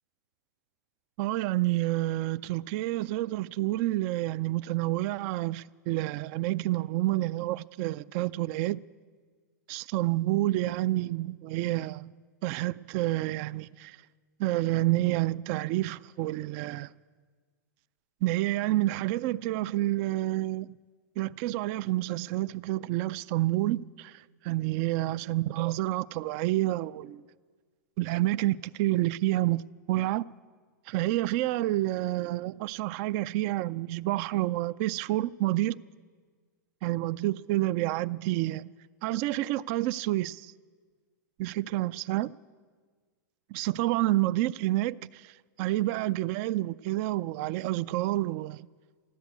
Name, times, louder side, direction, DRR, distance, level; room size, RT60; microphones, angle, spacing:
voice 1, 1.2-8.8 9.7-12.1 12.4-14.0 14.4-16.9 18.2-20.7 21.2-27.2 28.0-29.6 29.9-30.3 30.9-35.8 36.8-38.7 39.0-40.5 41.4-42.3 43.5-48.7, right 16 dB, 45° right, 0.4 m, -29 dB
13.5 x 12.5 x 8.3 m
hypercardioid pair, 120°, 10 cm